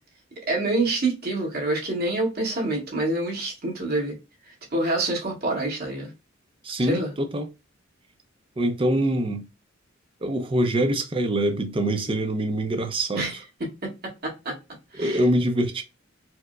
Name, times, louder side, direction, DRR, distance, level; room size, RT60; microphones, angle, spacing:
voice 1, 0.5-4.2 4.5-6.1 6.8-7.1 13.1-14.6 14.9-15.2, right 2 dB, 50° right, 1.5 m, -27 dB
voice 2, 6.6-7.5 8.6-9.4 10.2-13.3 15.0-15.8, right 1 dB, 25° right, 0.5 m, -24 dB
4.5 x 2.0 x 2.3 m
head